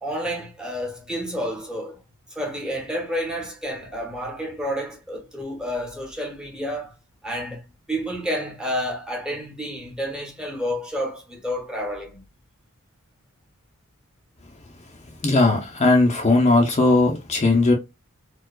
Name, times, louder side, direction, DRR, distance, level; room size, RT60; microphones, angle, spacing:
voice 1, 0.0-2.0 2.3-6.9 7.2-7.6 7.9-12.2, equal, 5° right, 0.9 m, -30 dB
voice 2, 15.2-17.7, left 2 dB, 30° left, 0.6 m, -18 dB
4.4 x 2.3 x 2.3 m
head